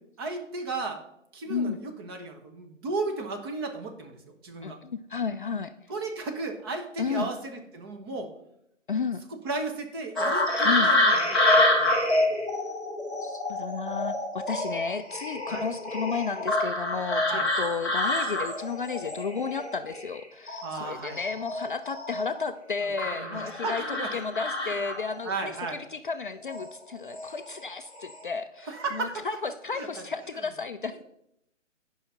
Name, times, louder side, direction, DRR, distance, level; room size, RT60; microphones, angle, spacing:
voice 1, 0.2-1.0 1.3-4.8 5.9-8.3 9.3-12.2 15.5-15.6 17.3-17.5 20.6-21.2 22.8-24.1 24.6-24.7 25.2-25.8 28.6-29.3 29.7-30.0 30.4-30.5 31.0-31.1, right 3 dB, 20° right, 4 dB, 0.9 m, -35 dB
voice 2, 4.6-5.7 7.0-7.3 8.9-9.2 10.6-10.9 13.2-31.0, left 5 dB, 45° left, 9 dB, 0.5 m, -33 dB
sound 1, 10.2-20.2 20.5-22.4 23.0-25.2 26.4-26.7 27.1-27.6 27.9-28.2, left 1 dB, ahead, 0.6 m, -27 dB
10.0 x 5.7 x 5.8 m, 0.77 s
figure-of-eight pair, 140°, 37 cm